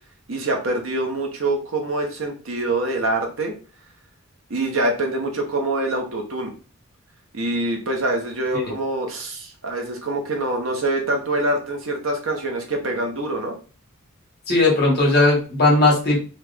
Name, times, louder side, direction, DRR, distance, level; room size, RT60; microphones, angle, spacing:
voice 1, 0.3-3.5 4.5-6.5 7.3-13.5, right 2 dB, 65° right, 2 dB, 0.9 m, -25 dB
voice 2, 14.5-16.2, left 2 dB, 50° left, -3 dB, 1.3 m, -17 dB
3.1 x 2.5 x 3.3 m, 0.37 s
head